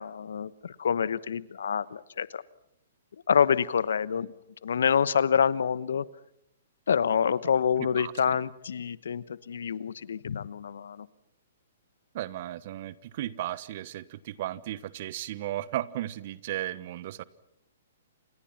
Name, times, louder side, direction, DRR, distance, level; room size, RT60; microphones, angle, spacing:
voice 1, 0.0-2.4 3.3-4.3 4.6-6.1 6.9-11.1, left 7 dB, 70° left, 19 dB, 1.0 m, -27 dB
voice 2, 7.8-8.4 12.1-17.2, right 13 dB, 50° right, 18 dB, 1.2 m, -35 dB
29.0 x 27.5 x 5.8 m, 0.75 s
hypercardioid pair, 125°, 0 cm